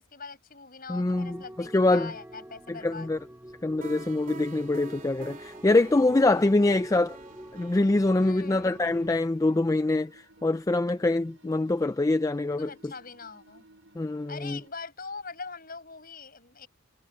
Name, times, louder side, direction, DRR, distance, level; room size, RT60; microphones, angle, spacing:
voice 1, 0.0-3.1 6.2-6.7 8.2-8.9 12.6-13.6 14.3-16.7, left 4 dB, 45° left, 7.7 m, -42 dB
voice 2, 0.9-2.1 2.7-3.2 3.6-7.2 7.5-12.9 14.0-14.6, left 2 dB, 15° left, 0.3 m, -24 dB
sound 1, 0.9-9.2, right 1 dB, 10° right, 2.4 m, -46 dB
sound 2, 3.8-10.6, right 3 dB, 40° right, 2.8 m, -48 dB
sound 3, 6.2-14.7, right 1 dB, 75° right, 6.7 m, -58 dB
head